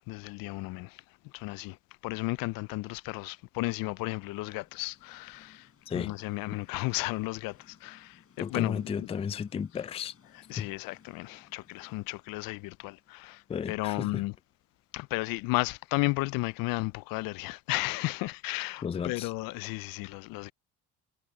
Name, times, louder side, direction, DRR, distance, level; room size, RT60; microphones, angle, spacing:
voice 1, 0.0-1.8 2.0-5.7 5.9-9.1 10.5-14.3 14.9-20.5, left 22 dB, 70° left, 0.5 m, -34 dB
Train, 1.2-19.2, left 6 dB, 40° left, 5.3 m, -65 dB
voice 2, 8.4-10.1 10.6-10.7 13.5-14.2 18.8-19.3, left 7 dB, 20° left, 0.3 m, -34 dB
supercardioid pair, 80°, 35 cm